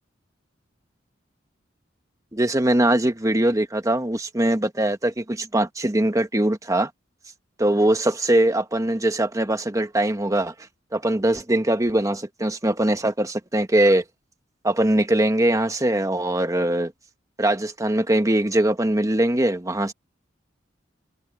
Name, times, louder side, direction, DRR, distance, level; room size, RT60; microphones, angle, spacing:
voice 1, 2.3-6.9 7.6-10.5 10.9-14.0 14.6-16.9 17.4-19.9, right 1 dB, 15° right, 1.2 m, -21 dB
head